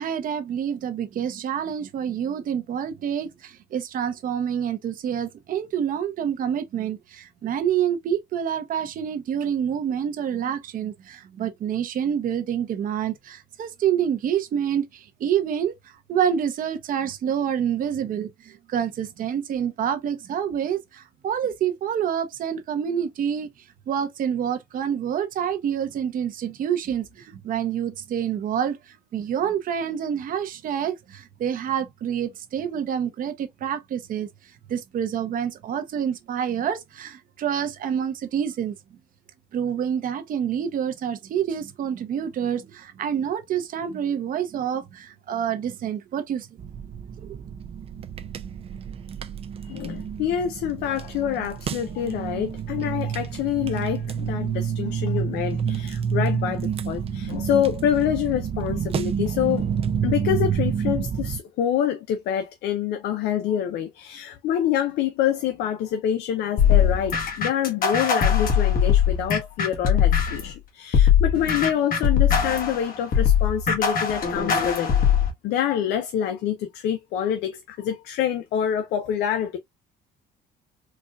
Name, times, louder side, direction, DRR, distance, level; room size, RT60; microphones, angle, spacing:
voice 1, 0.0-23.5 23.9-34.3 34.7-38.8 39.5-46.5 47.2-47.4, right 8 dB, 55° right, 0.9 m, -27 dB
sound 1, 46.6-61.4, right 7 dB, 35° right, 0.4 m, -29 dB
voice 2, 49.7-59.7 60.0-74.9 75.4-79.6, left 10 dB, 80° left, 0.6 m, -26 dB
sound 2, 66.6-70.5 70.9-75.3, left 8 dB, 55° left, 1.3 m, -20 dB
4.3 x 2.4 x 2.4 m
cardioid pair, 110°, 17 cm